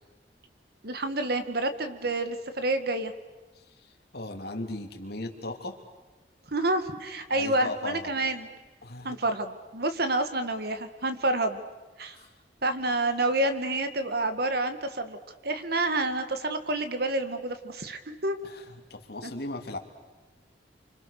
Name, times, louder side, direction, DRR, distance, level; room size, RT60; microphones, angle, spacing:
voice 1, 0.8-3.1 6.5-8.5 9.0-11.6 12.0-12.2 12.6-15.2 15.4-18.4 19.2-19.3, right 2 dB, 60° right, 9 dB, 2.0 m, -28 dB
voice 2, 3.5-5.8 7.3-8.3 8.8-9.2 12.1-12.3 18.4-19.8, left 2 dB, 65° left, 4 dB, 2.9 m, -38 dB
29.0 x 25.5 x 6.7 m, 1.2 s
head